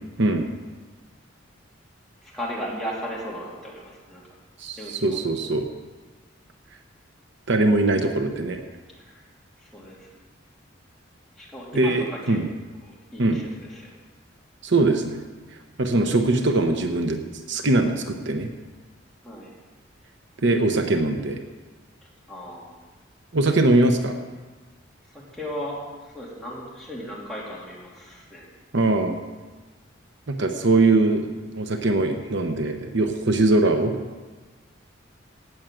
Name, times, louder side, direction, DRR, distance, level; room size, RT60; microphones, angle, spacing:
voice 1, 2.2-4.2 4.8-5.2 9.1-9.2 9.6-10.1 11.4-12.4 12.8-13.9 19.2-19.5 22.3-22.7 25.1-28.5, equal, ahead, -6 dB, 3.2 m, -36 dB
voice 2, 4.6-5.7 7.5-8.6 11.7-12.5 13.2-13.4 14.6-15.2 15.8-17.2 17.5-18.5 20.4-21.4 23.3-24.2 28.7-29.2 30.3-34.0, right 2 dB, 65° right, 5 dB, 1.0 m, -21 dB
18.0 x 6.4 x 7.8 m, 1.3 s
head